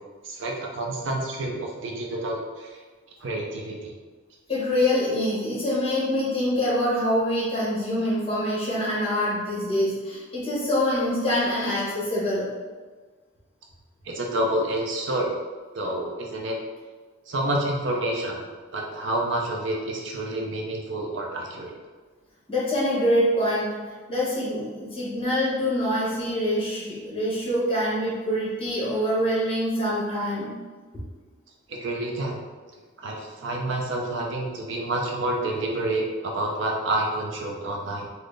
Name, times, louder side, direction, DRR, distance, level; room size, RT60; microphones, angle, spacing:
voice 1, 0.2-2.8 3.2-3.9 14.0-15.3 15.7-16.6 17.3-18.4 18.7-21.8 31.7-32.4 33.0-38.1, right 1 dB, 60° right, 0 dB, 0.5 m, -28 dB
voice 2, 4.5-12.5 22.5-23.7 24.1-30.5, left 1 dB, 25° left, -7 dB, 1.2 m, -25 dB
4.0 x 2.1 x 3.2 m, 1.4 s
head